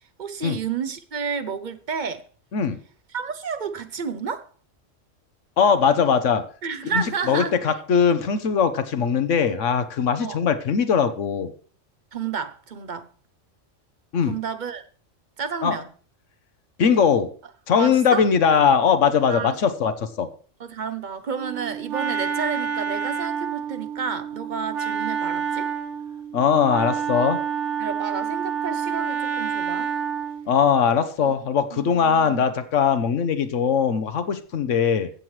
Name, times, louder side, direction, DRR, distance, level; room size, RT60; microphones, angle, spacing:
voice 1, 0.2-2.2 3.1-4.5 6.6-7.6 10.2-10.4 12.1-13.1 14.3-14.8 15.4-15.9 17.7-18.3 19.3-19.6 20.6-25.7 27.8-29.9 31.2-31.3 31.7-32.4, right 6 dB, 45° right, 0.8 m, -31 dB
voice 2, 5.6-6.4 6.9-11.5 14.1-14.3 15.6-15.7 16.8-17.3 17.7-20.3 26.3-27.4 30.5-35.1, left 6 dB, 75° left, 1.2 m, -20 dB
Wind instrument woodwind instrument, 21.4-30.5, right 7 dB, 70° right, 1.3 m, -28 dB
15.0 x 7.5 x 3.2 m
omnidirectional pair, 1.3 m